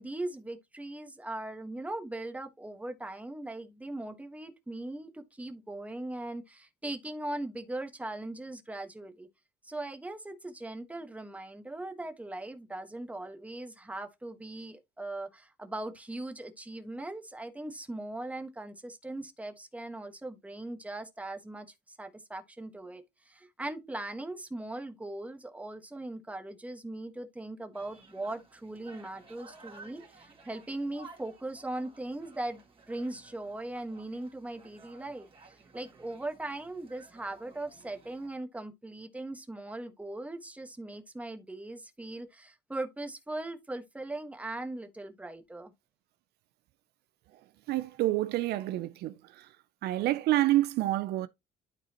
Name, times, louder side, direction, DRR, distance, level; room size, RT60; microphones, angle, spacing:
voice 1, 0.0-9.3 9.6-45.7, right 2 dB, 10° right, 1.3 m, -39 dB
sound 1, 27.7-38.3, right 4 dB, 30° right, 2.5 m, -55 dB
voice 2, 47.7-49.6 49.8-51.3, right 15 dB, 75° right, 0.5 m, -28 dB
12.0 x 4.1 x 2.9 m
cardioid pair, 110°, 17 cm